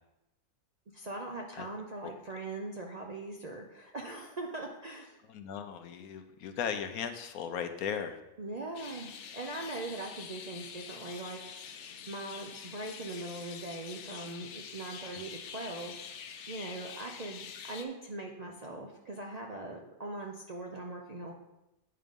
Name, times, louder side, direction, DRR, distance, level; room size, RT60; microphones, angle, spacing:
voice 1, 0.9-5.2 8.4-11.4 12.1-15.9 16.5-21.3, right 2 dB, 50° right, 0 dB, 0.5 m, -41 dB
voice 2, 5.3-8.2, left 7 dB, 80° left, 8 dB, 1.1 m, -37 dB
sound 1, 8.7-17.8, left 7 dB, 65° left, 0.8 m, -46 dB
8.9 x 3.8 x 5.2 m, 0.92 s
omnidirectional pair, 1.5 m